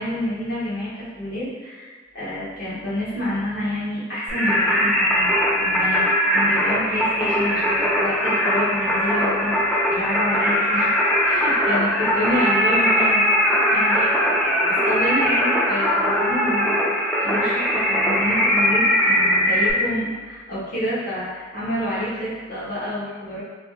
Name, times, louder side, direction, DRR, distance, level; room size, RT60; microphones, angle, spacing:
voice 1, 0.0-5.3 5.6-11.0 11.2-23.4, left 1 dB, 50° left, -10 dB, 1.3 m, -28 dB
Singing, 4.3-19.7, equal, ahead, 0.4 m, -20 dB
3.2 x 2.1 x 3.1 m, 1.5 s
head